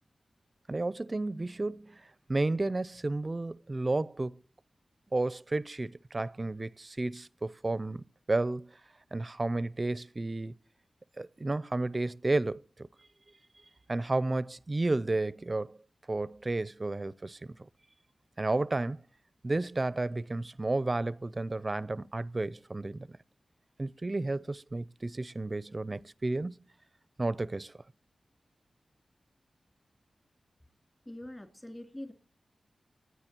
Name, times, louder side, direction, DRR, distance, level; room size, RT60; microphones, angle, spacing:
voice 1, 0.7-2.0 2.3-4.4 5.1-8.7 9.1-10.5 11.2-12.9 13.9-15.8 16.1-17.5 18.4-19.0 19.4-23.2 23.8-26.5 27.2-27.7, right 2 dB, 35° right, 0.5 m, -32 dB
voice 2, 31.0-32.1, left 1 dB, 20° left, 3.1 m, -43 dB
23.0 x 9.5 x 2.9 m
cardioid pair, 55°, 0 cm